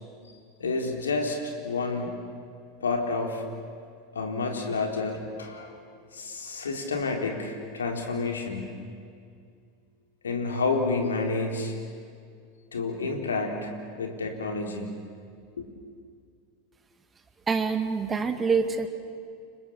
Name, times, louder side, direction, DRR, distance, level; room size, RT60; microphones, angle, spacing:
voice 1, 0.6-2.1 2.8-3.4 4.1-5.8 6.1-8.7 10.2-11.7 12.7-13.7 14.0-14.9 15.6-15.7, left 3 dB, 80° left, 2 dB, 4.0 m, -29 dB
voice 2, 17.5-18.9, right 5 dB, 20° right, 7 dB, 2.3 m, -25 dB
30.0 x 25.5 x 7.4 m, 2.3 s
figure-of-eight pair, 85°, 0 cm